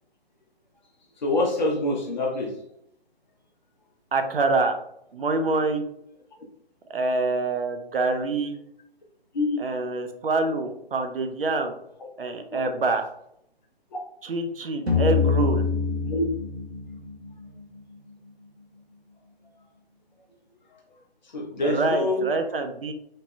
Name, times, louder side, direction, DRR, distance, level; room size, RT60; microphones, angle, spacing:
voice 1, 1.2-2.5 9.3-9.6 12.6-12.7 13.9-14.0 16.1-16.2 21.3-22.3, left 2 dB, 45° left, 0 dB, 0.8 m, -25 dB
voice 2, 4.1-4.8 5.1-5.8 6.9-8.6 9.6-11.7 12.2-13.1 14.2-15.6 21.6-22.9, right 3 dB, 65° right, 6 dB, 0.5 m, -26 dB
sound 1, 14.9-17.8, left 5 dB, 85° right, 0.9 m, -25 dB
2.9 x 2.8 x 2.2 m, 0.75 s
figure-of-eight pair, 135°, 31 cm